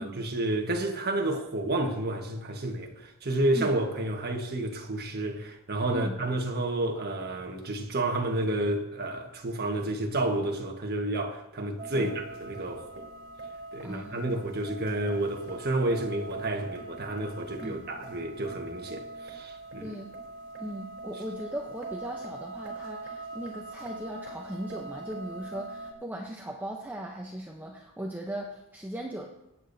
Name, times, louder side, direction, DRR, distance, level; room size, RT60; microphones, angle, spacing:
voice 1, 0.0-12.8 13.7-20.0, right 1 dB, 50° right, 1.4 m, -30 dB
sound 1, 11.8-25.9, right 2 dB, 70° right, 3.4 m, -42 dB
voice 2, 13.8-14.4 17.6-17.8 19.8-20.1 20.6-29.3, right 1 dB, 10° right, 0.8 m, -38 dB
25.0 x 8.6 x 2.7 m
head